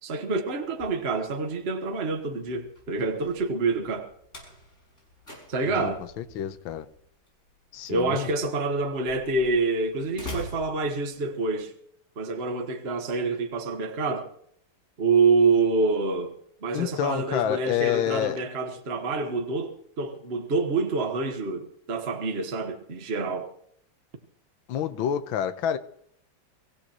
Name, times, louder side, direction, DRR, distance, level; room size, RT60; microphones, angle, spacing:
voice 1, 0.0-4.1 5.5-6.0 7.9-11.7 12.2-14.3 15.0-16.3 16.6-23.5, right 3 dB, 35° right, 1.5 m, -27 dB
Slam, 0.6-11.5, left 1 dB, 35° left, 6.7 m, -46 dB
voice 2, 5.7-6.9 7.7-8.3 16.7-18.4 24.7-25.8, left 10 dB, 75° left, 1.7 m, -28 dB
24.5 x 16.5 x 3.0 m
omnidirectional pair, 2.2 m